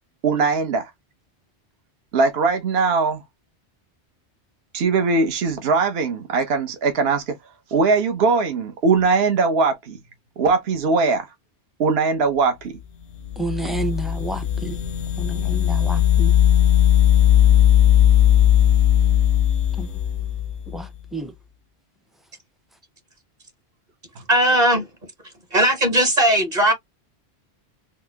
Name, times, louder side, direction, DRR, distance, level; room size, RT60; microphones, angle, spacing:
voice 1, 0.2-0.9 2.1-3.2 4.7-7.4 7.7-10.0 10.4-11.3 11.8-12.8, right 4 dB, 65° right, 1.1 m, -20 dB
sound 1, 13.3-20.8, left 10 dB, 80° left, 0.9 m, -17 dB
voice 2, 13.4-14.8 15.2-16.3 19.8-19.9 20.7-20.9 21.1-21.3, right 2 dB, ahead, 0.4 m, -29 dB
voice 3, 24.3-24.9 25.5-26.7, right 1 dB, 40° right, 1.2 m, -18 dB
4.2 x 2.1 x 2.8 m
omnidirectional pair, 1.1 m